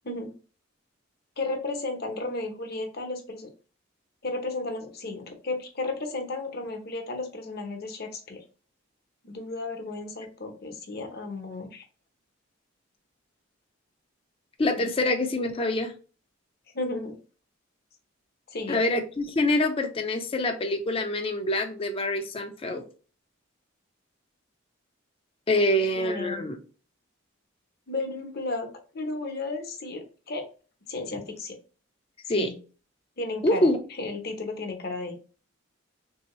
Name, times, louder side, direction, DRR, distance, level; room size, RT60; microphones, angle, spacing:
voice 1, 0.0-0.3 1.4-3.5 4.2-8.4 9.2-11.8 14.7-14.9 16.7-17.2 18.5-18.8 25.5-26.5 27.9-30.5 30.9-31.6 32.3-32.6 33.2-35.1, left 2 dB, 50° left, 4 dB, 0.8 m, -34 dB
voice 2, 14.6-15.9 18.7-22.8 25.5-26.6 32.3-32.5 33.4-33.8, left 1 dB, 30° left, 5 dB, 0.5 m, -25 dB
3.4 x 2.7 x 3.0 m, 0.37 s
head